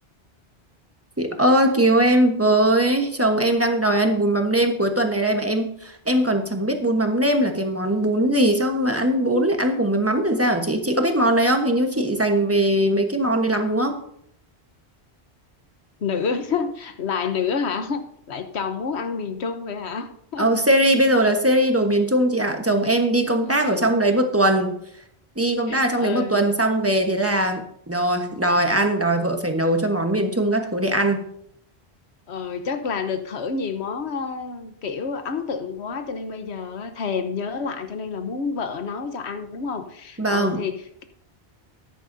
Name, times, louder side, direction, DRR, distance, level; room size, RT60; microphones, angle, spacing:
voice 1, 1.2-14.0 20.4-24.8 25.4-31.2 40.2-40.6, right 1 dB, 15° right, 5 dB, 1.1 m, -20 dB
voice 2, 16.0-18.0 18.3-20.5 23.3-23.8 25.7-26.4 32.3-41.0, left 5 dB, 85° left, 8 dB, 1.3 m, -29 dB
13.5 x 10.0 x 2.7 m, 0.70 s
omnidirectional pair, 1.1 m